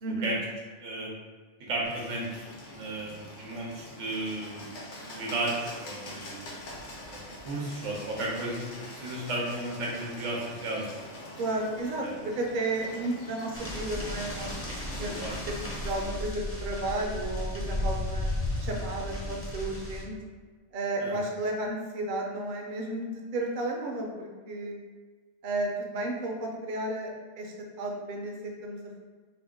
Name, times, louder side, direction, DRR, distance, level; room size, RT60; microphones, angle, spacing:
voice 1, 0.0-0.3 11.4-14.6 14.9-15.2 15.5-18.3 18.6-20.1 20.7-24.8 25.4-27.1 27.4-29.0, right 2 dB, 50° right, 0 dB, 0.6 m, -33 dB
voice 2, 0.8-1.1 1.7-2.3 2.7-4.7 5.2-6.6 7.1-8.7 8.9-10.9 12.0-12.1 15.2-15.3 21.0-21.2, right 2 dB, 85° right, -3 dB, 1.1 m, -34 dB
Bird, 1.8-16.0, left 1 dB, 70° left, 1.1 m, -44 dB
sound 1, 13.5-20.0, left 1 dB, 15° left, 0.5 m, -34 dB
3.8 x 2.2 x 3.4 m, 1.5 s
omnidirectional pair, 1.3 m